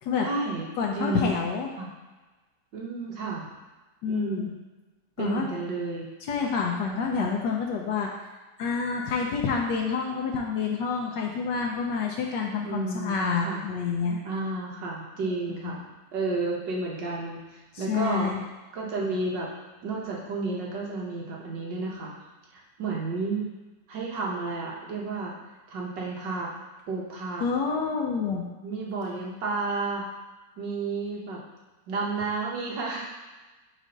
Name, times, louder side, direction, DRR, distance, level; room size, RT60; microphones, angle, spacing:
voice 1, 0.2-0.7 0.9-1.4 1.8-1.9 2.7-3.5 4.1-4.5 5.2-6.1 7.2-7.3 12.6-13.6 14.2-15.8 16.1-18.4 18.7-19.5 19.8-22.1 22.5-23.5 23.9-25.3 25.7-26.5 26.9-27.4 28.6-30.0 30.6-31.4 31.9-33.1, right 3 dB, 80° right, -3 dB, 1.8 m, -31 dB
voice 2, 0.8-1.7 4.0-4.5 5.2-5.4 6.3-8.1 8.6-14.2 15.6-15.7 17.7-18.4 27.4-28.4, left 5 dB, 80° left, 0 dB, 1.3 m, -28 dB
4.9 x 4.3 x 5.1 m, 1.2 s
omnidirectional pair, 1.9 m